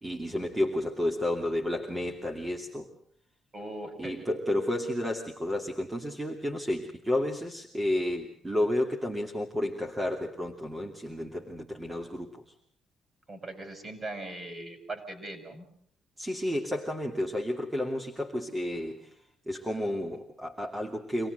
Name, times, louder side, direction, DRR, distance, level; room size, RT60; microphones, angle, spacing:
voice 1, 0.0-2.9 4.0-12.4 16.2-19.0 19.5-21.3, left 1 dB, 15° right, 2 dB, 2.8 m, -31 dB
voice 2, 3.5-4.2 13.3-15.7, right 2 dB, 35° right, 8 dB, 6.2 m, -40 dB
26.0 x 18.0 x 8.0 m, 0.65 s
cardioid pair, 90°, 0 cm